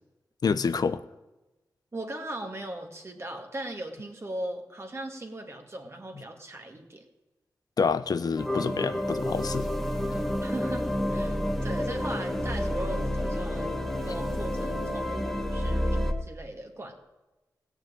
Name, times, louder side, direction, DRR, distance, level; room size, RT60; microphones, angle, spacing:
voice 1, 0.4-1.0 7.8-9.7, left 5 dB, 65° left, 14 dB, 0.7 m, -27 dB
voice 2, 1.9-7.0 10.4-13.8 14.1-17.0, right 1 dB, 40° right, 2 dB, 2.2 m, -38 dB
sound 1, 8.4-16.1, left 1 dB, 5° left, 1.6 m, -29 dB
16.0 x 6.5 x 8.8 m, 1.1 s
cardioid pair, 60°, 7 cm